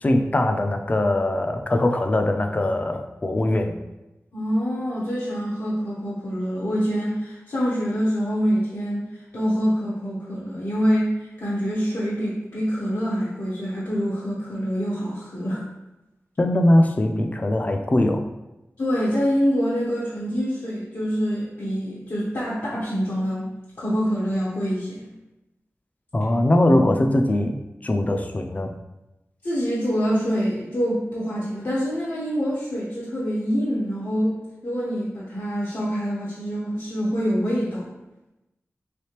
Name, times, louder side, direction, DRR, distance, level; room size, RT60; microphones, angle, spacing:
voice 1, 0.0-3.8 16.4-18.2 26.1-27.6 27.8-28.7, left 1 dB, 30° left, 5 dB, 0.4 m, -21 dB
voice 2, 4.3-9.1 9.3-15.6 18.8-23.5 23.8-25.1 29.4-37.9, equal, 75° left, -8 dB, 0.8 m, -25 dB
3.3 x 3.1 x 2.9 m, 0.98 s
wide cardioid pair, 80°, 5 cm